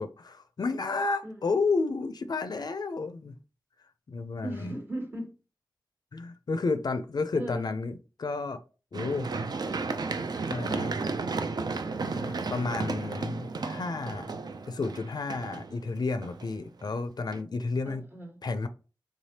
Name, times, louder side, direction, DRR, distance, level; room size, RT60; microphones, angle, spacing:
voice 1, 0.0-3.3 4.1-4.7 6.1-8.6 8.9-9.3 10.5-10.9 12.0-14.3 14.7-18.0 18.4-18.7, left 3 dB, 65° left, 0.4 m, -31 dB
voice 2, 1.2-1.6 4.4-5.4 7.3-7.7 17.8-18.4, right 1 dB, 30° right, 1.2 m, -37 dB
Run, 8.9-16.8 17.3-17.4, right 4 dB, 65° right, 0.4 m, -33 dB
3.7 x 3.2 x 2.8 m
wide cardioid pair, 55°, 7 cm